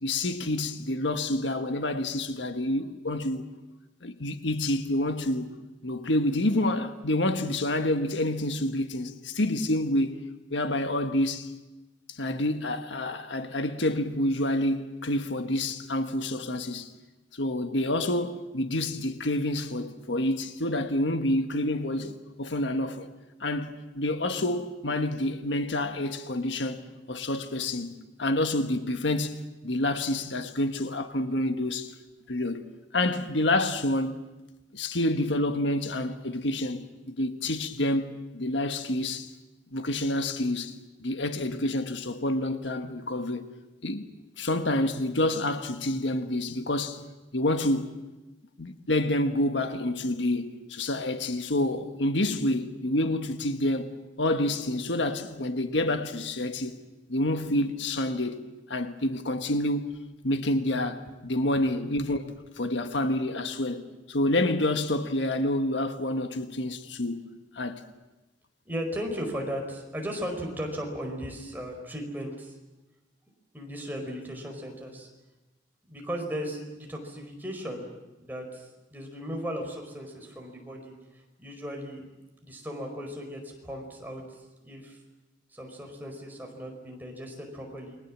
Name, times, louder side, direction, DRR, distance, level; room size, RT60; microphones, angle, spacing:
voice 1, 0.0-3.4 4.0-5.5 5.8-10.2 10.5-11.5 12.1-16.9 17.3-23.1 23.4-26.8 27.1-31.9 32.3-32.6 32.9-34.2 34.7-38.1 38.3-39.3 39.7-43.5 43.8-44.0 44.4-47.0 47.3-47.9 48.6-56.8 57.1-58.4 58.7-59.9 60.2-67.3 67.5-67.8, left 1 dB, 80° left, 1.5 m, -28 dB
voice 2, 68.6-72.5 73.5-75.1 75.9-77.8 78.2-80.9 81.4-82.0 82.4-84.2 84.6-85.0 85.5-88.0, equal, 10° right, 4.8 m, -36 dB
29.0 x 22.0 x 7.5 m
head